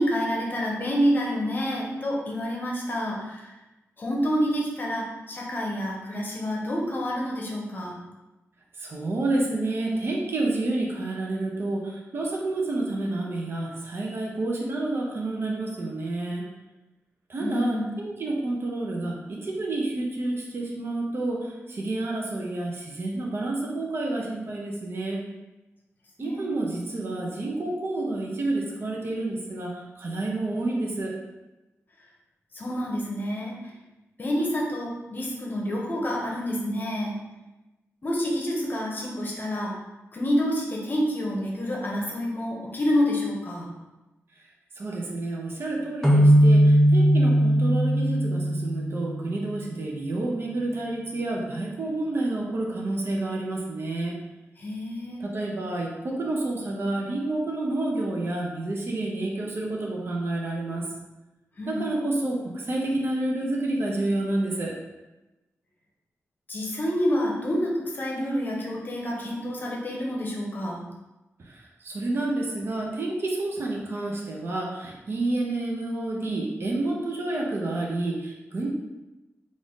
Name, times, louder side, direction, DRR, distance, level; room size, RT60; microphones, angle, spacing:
voice 1, 0.0-3.5 4.0-8.0 17.4-18.0 26.2-26.5 32.5-33.6 34.2-37.2 38.0-39.7 40.1-43.7 54.6-55.2 61.6-61.9 66.5-70.8, equal, 40° left, -2 dB, 0.8 m, -28 dB
voice 2, 8.8-16.5 17.3-25.2 26.2-31.1 44.8-54.2 55.2-60.8 61.7-64.8 71.4-78.7, right 2 dB, 50° right, -2 dB, 0.6 m, -29 dB
sound 1, 46.0-49.6, equal, 5° left, 0.6 m, -19 dB
3.8 x 2.5 x 3.6 m, 1.0 s
wide cardioid pair, 120°, 5 cm